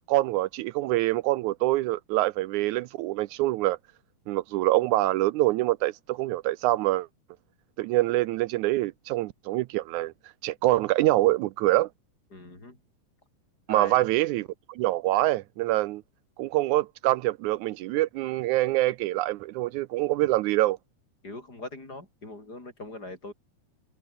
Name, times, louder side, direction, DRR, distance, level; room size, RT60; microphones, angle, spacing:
voice 1, 0.1-3.8 4.3-7.1 7.8-10.1 10.4-11.9 13.7-16.0 16.4-20.8, right 17 dB, 80° right, 2.0 m, -25 dB
voice 2, 12.3-12.8 13.7-14.0 21.2-23.3, left 2 dB, 30° left, 6.5 m, -41 dB
omnidirectional pair, 3.5 m